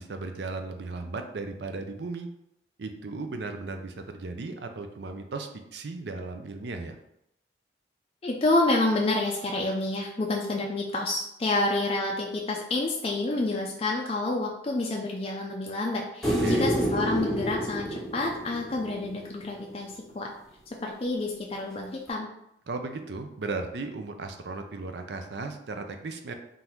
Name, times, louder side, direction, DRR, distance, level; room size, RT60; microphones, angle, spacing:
voice 1, 0.0-2.3 2.8-7.0 16.2-16.7 22.7-26.3, right 3 dB, 65° right, 6 dB, 0.5 m, -36 dB
voice 2, 8.2-20.3 20.8-22.3, left 2 dB, 30° left, -1 dB, 0.4 m, -28 dB
sound 1, 16.2-19.5 22.1-22.2, equal, ahead, 0.7 m, -28 dB
3.8 x 2.6 x 4.4 m, 0.79 s
head